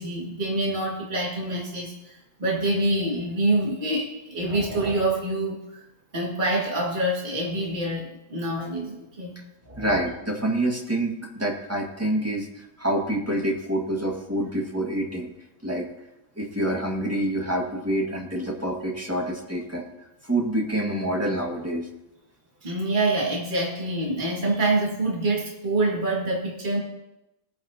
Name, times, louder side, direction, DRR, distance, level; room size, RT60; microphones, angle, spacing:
voice 1, 0.0-5.6 6.1-9.3 9.7-9.9 22.6-26.8, right 2 dB, 30° right, -2 dB, 2.2 m, -26 dB
voice 2, 9.8-15.3 15.6-15.9 16.4-19.9 20.2-21.9, right 1 dB, 10° right, -1 dB, 1.8 m, -27 dB
20.0 x 8.7 x 2.9 m, 0.91 s
omnidirectional pair, 1.6 m